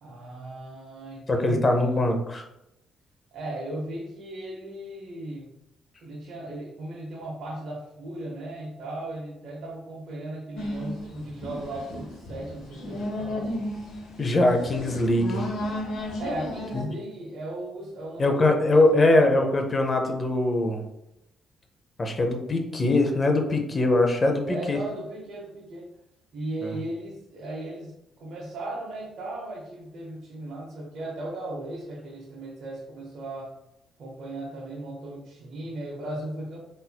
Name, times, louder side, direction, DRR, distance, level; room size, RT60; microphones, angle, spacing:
voice 1, 0.0-2.1 3.3-5.5 6.0-13.7 16.2-19.1 24.5-25.9 26.3-33.5 34.0-36.6, right 1 dB, 65° right, -2 dB, 0.8 m, -37 dB
voice 2, 1.3-2.4 14.2-15.5 16.7-16.9 18.2-20.8 22.0-24.8 26.6-26.8, left 2 dB, 35° left, 4 dB, 0.6 m, -22 dB
sound 1, 10.5-16.8, left 1 dB, 85° left, 0.8 m, -34 dB
4.2 x 2.5 x 2.3 m, 0.84 s
cardioid pair, 90°, 0 cm